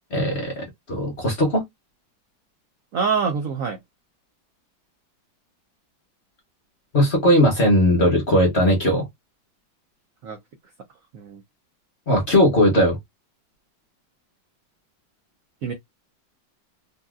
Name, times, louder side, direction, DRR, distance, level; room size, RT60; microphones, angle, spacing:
voice 1, 0.1-1.6 6.9-9.1 12.1-13.0, equal, 45° left, 0.9 m, -18 dB
voice 2, 2.9-3.8 10.2-10.4 11.1-11.4 15.6-15.7, right 5 dB, 70° right, 0.8 m, -25 dB
3.9 x 2.2 x 2.4 m
omnidirectional pair, 2.1 m